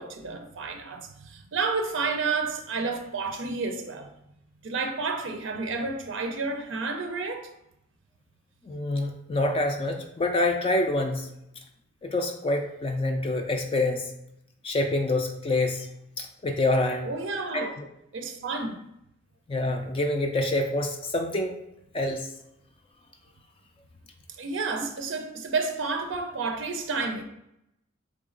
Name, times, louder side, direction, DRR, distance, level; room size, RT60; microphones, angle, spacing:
voice 1, 0.0-4.1 4.6-7.5 17.0-17.7 18.1-18.8 24.3-27.2, right 4 dB, 65° right, 5 dB, 0.5 m, -30 dB
voice 2, 8.7-11.3 12.0-14.1 14.6-15.9 16.2-17.1 17.5-17.7 19.5-21.5 21.9-22.3, left 2 dB, 25° left, 4 dB, 0.3 m, -26 dB
3.9 x 3.6 x 3.7 m, 0.81 s
head